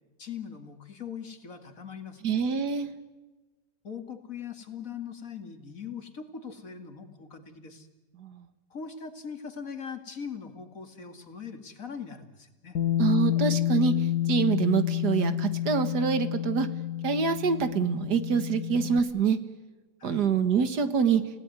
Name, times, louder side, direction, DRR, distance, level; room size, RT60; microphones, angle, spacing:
voice 1, 0.2-2.4 3.8-7.9 8.7-12.8 20.0-20.3, left 6 dB, 55° left, 7 dB, 2.6 m, -41 dB
voice 2, 2.2-2.9 8.2-8.5 13.0-16.7 17.0-19.4 20.0-21.2, right 6 dB, 80° right, 11 dB, 2.1 m, -26 dB
Bass guitar, 12.8-19.0, left 12 dB, 75° left, 2.0 m, -29 dB
29.5 x 17.5 x 9.5 m, 1.2 s
omnidirectional pair, 1.7 m